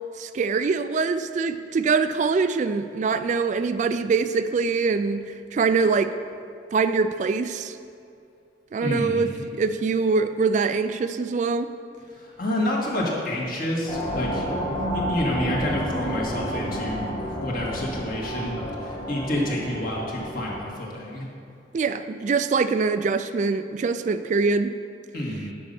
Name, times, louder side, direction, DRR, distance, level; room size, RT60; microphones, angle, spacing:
voice 1, 0.2-5.2 5.5-6.1 6.7-7.8 8.7-11.7 19.3-19.5 21.7-24.7, right 4 dB, 45° right, 11 dB, 0.3 m, -24 dB
voice 2, 8.8-9.4 12.1-14.5 14.9-21.3 25.1-25.5, left 1 dB, 55° left, -3 dB, 2.0 m, -29 dB
sound 1, 13.9-20.6, equal, 35° left, 2.1 m, -30 dB
9.8 x 5.4 x 6.9 m, 2.5 s
head